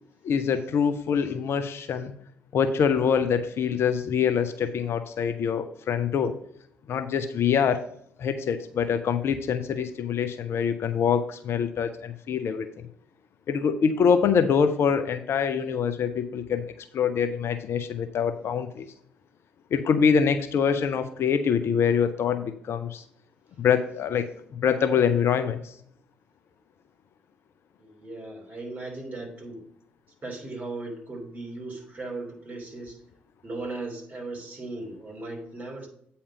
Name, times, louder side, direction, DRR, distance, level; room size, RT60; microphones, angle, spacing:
voice 1, 0.2-2.1 2.5-6.3 6.9-7.9 8.2-12.7 13.5-16.7 16.9-18.9 19.7-23.0 23.6-25.7, left 7 dB, 50° left, 10 dB, 0.6 m, -25 dB
voice 2, 27.8-29.6 30.2-33.0 33.4-35.9, right 2 dB, 35° right, -1 dB, 3.1 m, -37 dB
8.6 x 4.3 x 5.1 m, 0.67 s
figure-of-eight pair, 45°, 5 cm